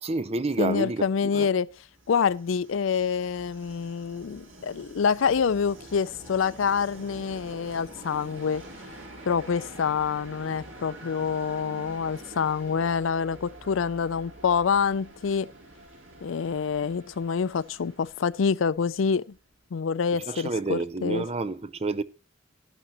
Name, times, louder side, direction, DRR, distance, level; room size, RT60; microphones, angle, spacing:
voice 1, 0.0-1.5 20.3-22.0, right 3 dB, 30° right, 0.6 m, -29 dB
voice 2, 0.6-1.7 2.1-8.6 9.3-15.5 16.2-19.4 19.7-21.2, left 6 dB, 75° left, 0.4 m, -26 dB
Train, 1.8-19.5, right 1 dB, 85° right, 3.7 m, -47 dB
12.0 x 11.5 x 2.9 m
head